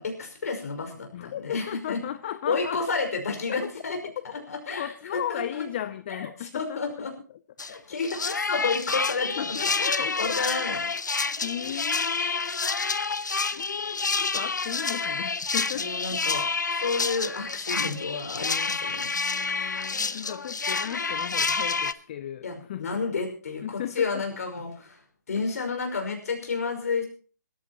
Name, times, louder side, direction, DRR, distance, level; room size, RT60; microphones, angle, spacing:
voice 1, 0.0-2.0 2.5-4.0 4.5-4.9 5.1-5.6 6.4-7.1 7.6-10.8 15.7-16.4 16.7-19.1 22.4-25.0 25.3-27.1, left 4 dB, 55° left, 4 dB, 5.6 m, -31 dB
voice 2, 1.1-2.8 3.5-3.7 4.0-4.5 4.8-7.1 9.4-10.4 11.4-12.5 13.5-16.4 19.1-23.1 23.6-24.2, left 11 dB, 30° left, 12 dB, 0.7 m, -36 dB
sound 1, 7.6-7.7 8.0-21.9, left 4 dB, 70° left, 1.0 m, -28 dB
26.0 x 14.5 x 3.0 m, 0.39 s
figure-of-eight pair, 150°, 10 cm